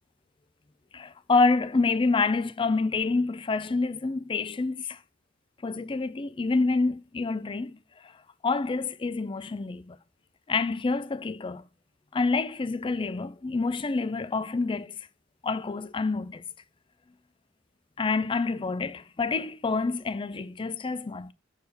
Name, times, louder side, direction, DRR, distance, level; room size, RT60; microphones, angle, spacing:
voice 1, 0.9-5.0 5.6-8.2 8.4-10.0 10.5-11.6 12.1-15.1 15.4-16.4 18.0-21.3, left 3 dB, 25° left, 0.4 m, -27 dB
6.9 x 4.2 x 6.6 m
head